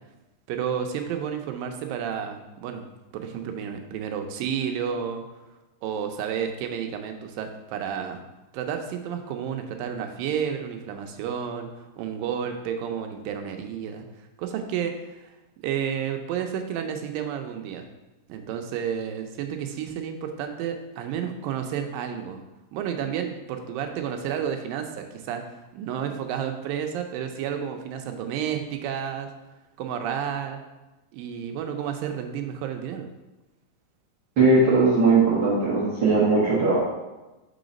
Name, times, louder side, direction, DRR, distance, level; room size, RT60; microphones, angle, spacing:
voice 1, 0.5-2.9 3.1-5.2 5.8-8.2 8.5-11.7 12.0-14.0 14.4-15.2 15.6-17.9 18.3-22.4 22.7-29.3 29.8-30.6 31.1-33.1, right 8 dB, 85° right, 5 dB, 2.3 m, -31 dB
voice 2, 34.4-36.8, right 3 dB, 55° right, -9 dB, 1.3 m, -19 dB
5.5 x 3.9 x 5.1 m, 1.1 s
omnidirectional pair, 4.0 m